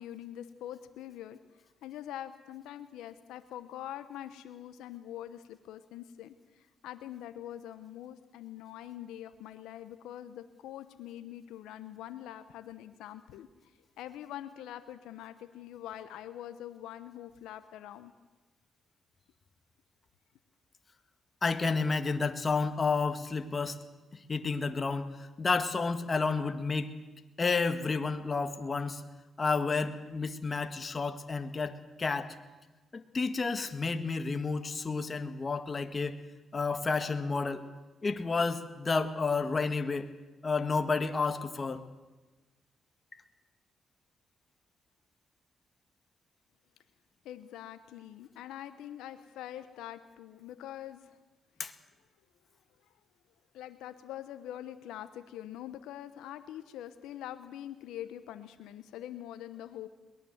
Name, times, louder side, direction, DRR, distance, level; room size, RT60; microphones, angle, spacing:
voice 1, 0.0-1.4 1.8-13.7 14.0-18.1 47.2-51.2 53.5-59.9, left 12 dB, 90° left, 10 dB, 1.0 m, -44 dB
voice 2, 21.4-23.8 24.1-26.9 27.4-29.0 29.4-32.3 32.9-36.2 36.5-37.6 38.0-40.1 40.4-41.8 51.6-51.7, left 4 dB, 40° left, 9 dB, 1.7 m, -31 dB
22.0 x 19.0 x 8.0 m, 1.2 s
supercardioid pair, 65°, 0 cm